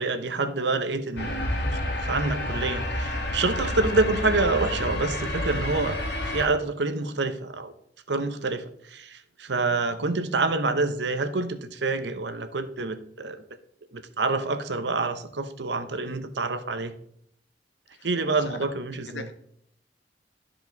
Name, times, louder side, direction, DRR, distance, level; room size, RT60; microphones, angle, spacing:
voice 1, 0.0-1.4 1.6-7.7 8.1-13.4 13.9-17.0 18.0-19.3, right 3 dB, 75° right, 10 dB, 0.8 m, -27 dB
sound 1, 1.2-6.5, left 1 dB, 65° left, 1.7 m, -29 dB
voice 2, 17.9-18.7 19.1-19.3, left 3 dB, 90° left, 7 dB, 1.1 m, -40 dB
12.5 x 5.0 x 4.0 m, 0.68 s
head